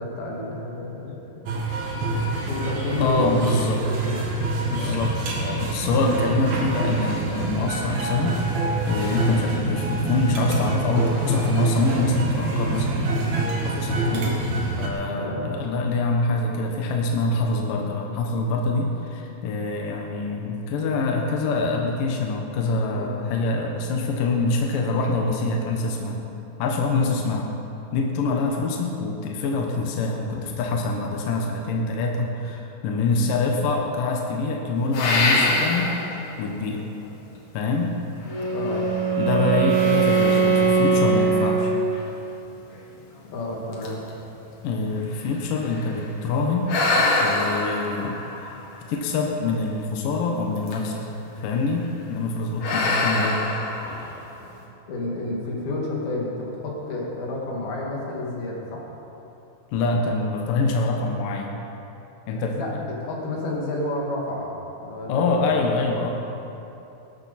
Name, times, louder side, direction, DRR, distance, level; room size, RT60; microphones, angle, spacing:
voice 1, 0.0-1.6 2.0-3.8 4.0-4.2 4.8-5.0 14.1-14.4 15.2-15.5 22.9-23.1 33.4-33.5 38.5-38.9 39.8-39.9 43.3-44.0 54.9-58.8 62.3-64.5 64.8-65.7 65.9-66.1, left 2 dB, 90° left, -3 dB, 4.2 m, -30 dB
sound 1, 1.5-14.9, right 2 dB, 55° right, 2.7 m, -26 dB
voice 2, 3.0-3.8 4.6-12.9 13.6-14.4 14.8-26.2 26.6-27.5 27.9-36.8 37.5-37.9 39.2-41.7 44.6-46.8 47.2-48.6 48.9-51.1 51.4-53.4 59.7-61.6 62.3-62.6 65.1-66.1, left 3 dB, 70° left, 0 dB, 2.7 m, -25 dB
sound 2, 34.9-36.2 36.8-36.9 38.3-39.2 39.7-42.1 42.8-42.9 43.3-43.4 43.7-46.0 46.7-49.4 50.6-51.1 51.4-51.7 52.6-54.5, left 2 dB, 55° left, 2.6 m, -26 dB
Wind instrument woodwind instrument, 38.3-42.2, right 5 dB, 85° right, 3.9 m, -21 dB
19.0 x 13.0 x 4.2 m, 2.9 s
omnidirectional pair, 4.2 m